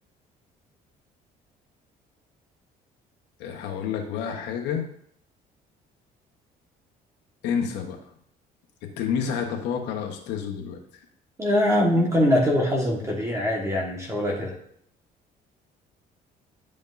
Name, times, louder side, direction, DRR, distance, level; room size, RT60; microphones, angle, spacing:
voice 1, 3.4-4.9 7.4-8.0 9.0-11.0, left 7 dB, 90° left, 2 dB, 1.2 m, -29 dB
voice 2, 11.4-14.5, left 1 dB, 20° right, -1 dB, 1.5 m, -22 dB
10.5 x 5.3 x 2.6 m, 0.67 s
cardioid pair, 110°, 17 cm